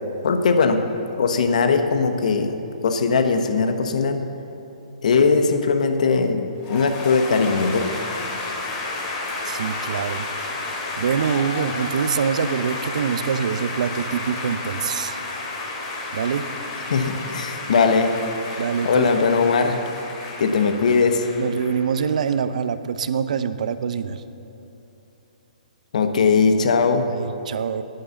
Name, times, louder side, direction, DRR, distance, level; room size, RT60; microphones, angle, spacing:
voice 1, 0.2-0.8 1.2-2.6 2.8-4.2 5.0-6.4 6.7-7.9 16.9-18.1 18.8-19.8 20.4-21.3 25.9-27.1, left 4 dB, 65° left, 7 dB, 1.1 m, -19 dB
sound 1, 6.6-22.1, left 2 dB, 30° left, 2.4 m, -32 dB
voice 2, 9.4-10.3 11.0-15.2 16.1-16.5 18.6-19.1 21.4-24.2 27.1-27.8, right 7 dB, 65° right, 12 dB, 0.6 m, -25 dB
10.5 x 9.8 x 7.1 m, 2.8 s
hypercardioid pair, 150°, 4 cm